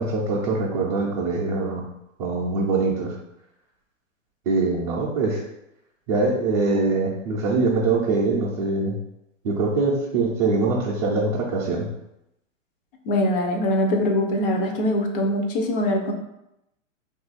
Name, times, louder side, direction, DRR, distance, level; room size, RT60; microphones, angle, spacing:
voice 1, 0.0-1.8 2.2-3.2 4.5-5.4 6.1-9.0 9.4-11.9, right 3 dB, 30° right, -8 dB, 0.4 m, -23 dB
voice 2, 13.0-16.1, left 1 dB, 45° left, 3 dB, 0.6 m, -22 dB
2.6 x 2.5 x 3.9 m, 0.87 s
hypercardioid pair, 150°, 39 cm